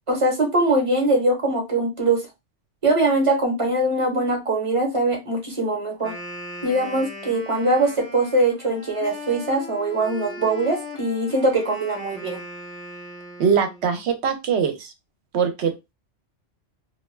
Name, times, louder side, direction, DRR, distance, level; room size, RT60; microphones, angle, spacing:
voice 1, 0.1-2.2 2.8-6.1 6.6-12.4, right 2 dB, 30° right, 0 dB, 0.8 m, -22 dB
Wind instrument woodwind instrument, 5.9-13.9, left 1 dB, 15° left, 0.5 m, -38 dB
voice 2, 13.4-14.9 15.3-15.7, right 6 dB, 65° right, 6 dB, 0.8 m, -22 dB
2.3 x 2.2 x 3.1 m, 0.22 s
omnidirectional pair, 1.3 m